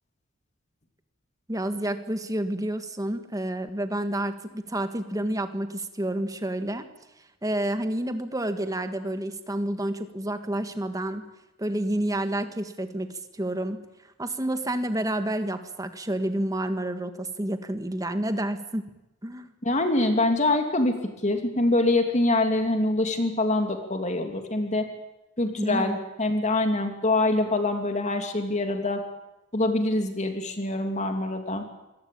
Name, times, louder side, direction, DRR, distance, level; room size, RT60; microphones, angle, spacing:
voice 1, 1.5-6.9 7.4-11.2 11.6-13.8 14.2-18.9 19.2-19.5 25.6-26.0, right 1 dB, 20° right, 9 dB, 1.6 m, -29 dB
voice 2, 19.6-24.9 25.4-25.9 26.2-29.0 29.5-31.6, left 2 dB, 35° left, 5 dB, 2.9 m, -24 dB
25.5 x 18.0 x 8.6 m, 0.95 s
head